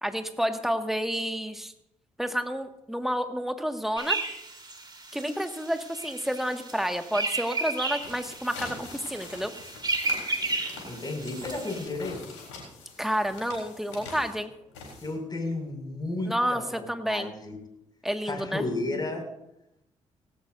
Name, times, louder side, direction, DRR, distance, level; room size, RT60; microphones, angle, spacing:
voice 1, 0.0-1.7 2.2-4.2 5.1-9.5 13.0-14.5 16.3-17.3 18.0-18.6, equal, ahead, 6 dB, 1.8 m, -30 dB
sound 1, 4.0-11.9, right 3 dB, 30° right, 3.6 m, -34 dB
sound 2, 8.0-15.4, left 4 dB, 85° left, 3.7 m, -44 dB
voice 2, 10.8-12.2 15.0-17.6 18.3-19.2, left 2 dB, 30° left, 2 dB, 5.8 m, -33 dB
18.5 x 17.0 x 2.6 m, 0.82 s
hypercardioid pair, 40°, 15 cm